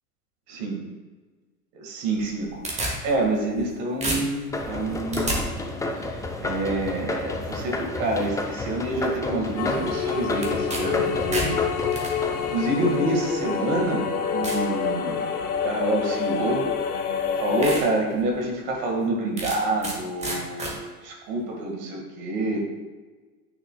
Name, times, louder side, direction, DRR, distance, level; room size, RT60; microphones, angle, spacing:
voice 1, 0.5-0.8 1.7-2.6 3.0-5.4 5.9-11.6 12.4-14.1 14.3-15.3 15.6-16.6 17.4-22.6, right 2 dB, 50° right, 0 dB, 1.9 m, -27 dB
sound 1, 2.2-3.7 4.0-5.4 10.4-10.8 11.1-12.1 13.0-13.1 13.7-13.8 14.4-14.7 15.2-15.5 16.7-16.8 17.2-17.3 17.6-17.8 18.3-18.4 19.4-20.0 20.2-20.7, right 1 dB, 15° right, 1.5 m, -30 dB
sound 2, 4.5-13.6, left 2 dB, 10° left, 0.5 m, -31 dB
sound 3, 9.6-17.8, left 7 dB, 80° left, 0.8 m, -27 dB
9.4 x 5.6 x 2.3 m, 1.3 s
hypercardioid pair, 85°, 45 cm